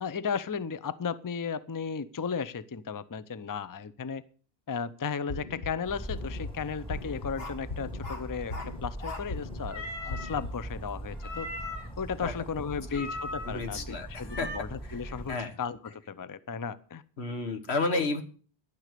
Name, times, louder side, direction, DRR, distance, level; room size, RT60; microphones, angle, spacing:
voice 1, 0.0-4.2 4.7-8.6 8.8-11.5 12.0-17.0 17.9-18.0, left 6 dB, 25° left, 16 dB, 0.5 m, -35 dB
sound 1, 5.3-5.7 6.1-6.5 6.9-7.3 7.7-8.1 8.5-8.9 9.3-9.7 10.1-10.5, left 2 dB, 45° left, 1.2 m, -38 dB
Bird vocalization bird call bird song, 5.8-15.3, right 1 dB, 5° left, 2.3 m, -41 dB
sound 2, 7.4-7.6 8.0-8.7 9.0-9.3 9.7-10.4 11.2-12.0 12.9-13.7 14.3-14.6, left 2 dB, 70° left, 1.9 m, -39 dB
voice 2, 13.4-14.5 14.8-15.0 15.3-15.5 17.2-18.2, left 3 dB, 90° left, 8 dB, 1.7 m, -32 dB
11.5 x 9.4 x 6.7 m, 0.41 s
omnidirectional pair, 1.1 m